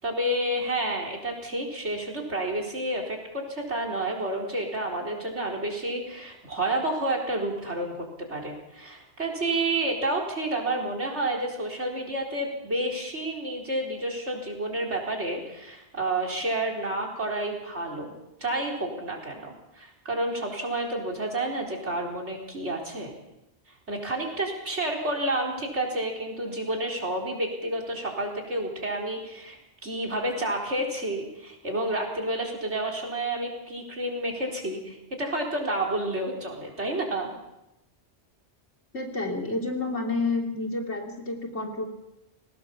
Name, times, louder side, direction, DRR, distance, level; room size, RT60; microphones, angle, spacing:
voice 1, 0.0-23.1 23.9-37.3, right 1 dB, 80° right, 0 dB, 4.7 m, -30 dB
voice 2, 38.9-41.9, left 3 dB, 80° left, 2 dB, 3.7 m, -29 dB
22.0 x 18.5 x 7.2 m, 0.90 s
omnidirectional pair, 1.2 m